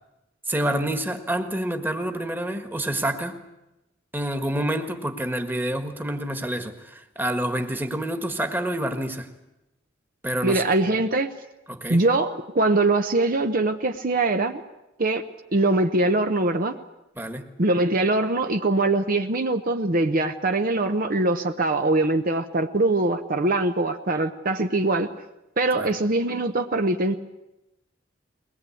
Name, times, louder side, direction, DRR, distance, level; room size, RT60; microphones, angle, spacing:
voice 1, 0.5-3.4 4.1-9.3 10.2-10.6 11.7-12.0 17.2-17.5 25.7-25.9, right 1 dB, 10° right, 1.6 m, -28 dB
voice 2, 10.4-11.3 11.9-14.6 15.0-15.2 15.5-16.8 17.6-25.1 25.6-27.1, right 2 dB, 50° right, 0.9 m, -22 dB
22.0 x 20.0 x 8.5 m
head